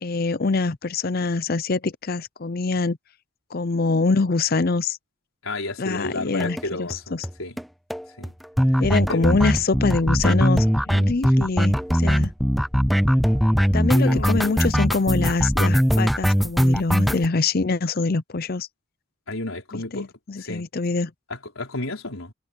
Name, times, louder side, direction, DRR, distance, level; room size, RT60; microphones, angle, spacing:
voice 1, 0.0-3.0 3.5-5.0 5.8-7.3 8.8-12.3 13.7-18.7 19.7-21.1, left 3 dB, 45° left, 0.6 m, -24 dB
voice 2, 5.4-7.5 8.2-8.3 8.7-8.8 9.1-9.3 13.9-14.5 19.3-20.1 20.4-20.7 21.3-22.3, left 2 dB, 80° left, 4.4 m, -32 dB
sound 1, 6.4-6.6 6.9-7.0 7.2-7.3 7.6-7.7 7.9-17.3, equal, ahead, 0.5 m, -20 dB
head